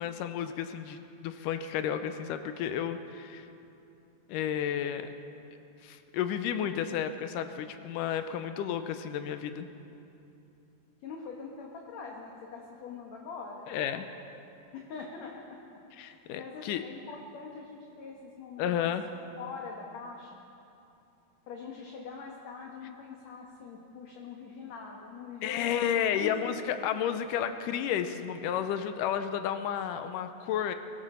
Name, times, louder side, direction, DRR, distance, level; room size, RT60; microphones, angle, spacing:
voice 1, 0.0-3.5 4.3-5.1 5.8-9.7 13.7-14.1 16.0-16.8 18.6-19.2 25.4-30.7, left 9 dB, 80° left, 9 dB, 2.1 m, -32 dB
voice 2, 11.0-13.7 14.7-15.6 15.9-18.8 19.4-20.4 21.5-26.6, left 5 dB, 60° left, -1 dB, 2.1 m, -43 dB
22.5 x 13.5 x 4.4 m, 2.8 s
omnidirectional pair, 4.0 m